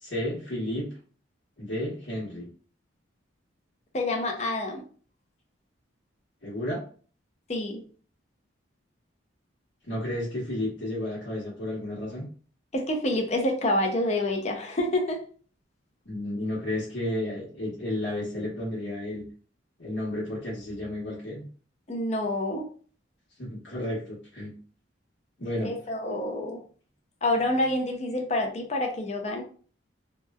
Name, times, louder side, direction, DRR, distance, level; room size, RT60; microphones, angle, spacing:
voice 1, 0.0-0.9 1.6-2.5 6.4-6.8 9.9-12.3 16.0-19.3 19.8-21.4 23.4-24.6 25.4-25.7, left 1 dB, 75° left, -6 dB, 1.1 m, -32 dB
voice 2, 3.9-4.8 7.5-7.8 12.7-15.2 21.9-22.7 25.6-26.6 27.2-29.4, left 1 dB, 35° left, 3 dB, 0.5 m, -27 dB
2.9 x 2.1 x 2.3 m, 0.42 s
head